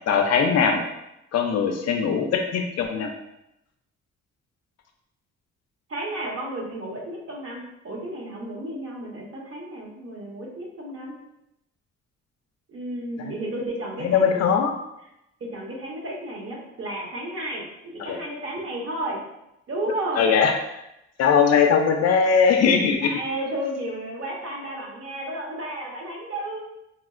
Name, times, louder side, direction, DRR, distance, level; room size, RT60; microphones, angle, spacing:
voice 1, 0.1-0.8 1.3-3.1 13.2-13.3 14.0-14.7 18.0-18.2 20.2-20.6 21.2-23.1, left 6 dB, 60° left, 3 dB, 0.4 m, -20 dB
voice 2, 5.9-11.1 12.7-14.4 15.4-19.2 19.7-20.3 23.0-26.6, right 1 dB, 45° right, -2 dB, 1.0 m, -32 dB
4.2 x 2.0 x 2.4 m, 0.84 s
cardioid pair, 90°, 30 cm